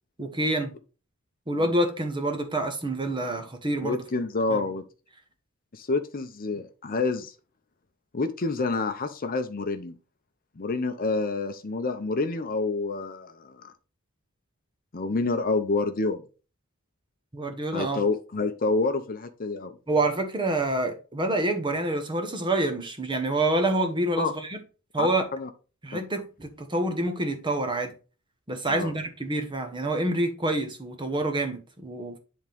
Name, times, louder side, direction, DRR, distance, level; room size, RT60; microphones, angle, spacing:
voice 1, 0.2-0.7 1.5-4.0 4.5-4.6 17.3-18.0 19.9-24.6 24.9-25.3 25.8-27.9 28.5-32.2, right 1 dB, 20° right, 1.2 m, -27 dB
voice 2, 3.8-4.8 5.7-7.3 8.1-9.9 10.6-13.7 14.9-16.2 17.7-19.8 24.2-24.3 25.0-25.5 25.9-26.0 28.7-28.9, left 3 dB, 40° left, 0.7 m, -28 dB
10.5 x 3.7 x 3.4 m
head